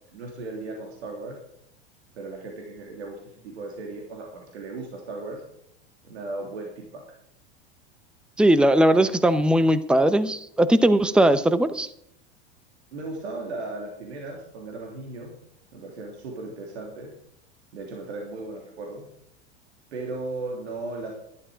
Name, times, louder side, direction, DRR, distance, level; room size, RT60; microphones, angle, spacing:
voice 1, 0.1-1.4 2.1-3.2 3.4-5.4 6.0-7.0 12.9-15.4 15.7-17.1 17.7-19.1 19.9-21.1, right 2 dB, 80° right, 0 dB, 3.1 m, -36 dB
voice 2, 8.4-11.9, right 1 dB, 5° right, 13 dB, 0.7 m, -19 dB
12.0 x 11.5 x 5.1 m, 0.71 s
hypercardioid pair, 100°, 33 cm